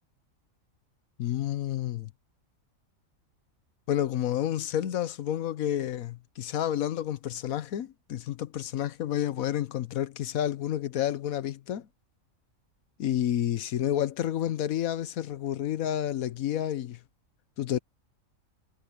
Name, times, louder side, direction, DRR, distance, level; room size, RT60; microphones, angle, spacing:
voice 1, 1.2-2.1 3.9-11.9 13.0-17.0 17.6-17.8, left 11 dB, 85° left, 1.3 m, -30 dB
omnidirectional pair, 1.4 m